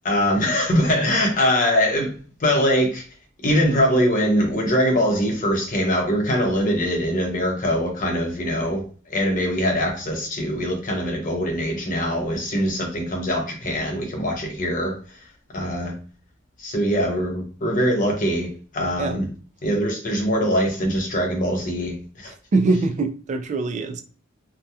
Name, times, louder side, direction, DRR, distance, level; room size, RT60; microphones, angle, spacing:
voice 1, 0.0-2.1 2.4-3.0 3.4-15.0 15.5-15.9 16.6-19.3 19.6-22.3, equal, 40° left, 0.7 m, -22 dB
voice 2, 22.3-24.0, right 3 dB, 35° right, 0.3 m, -23 dB
2.8 x 2.2 x 2.3 m
head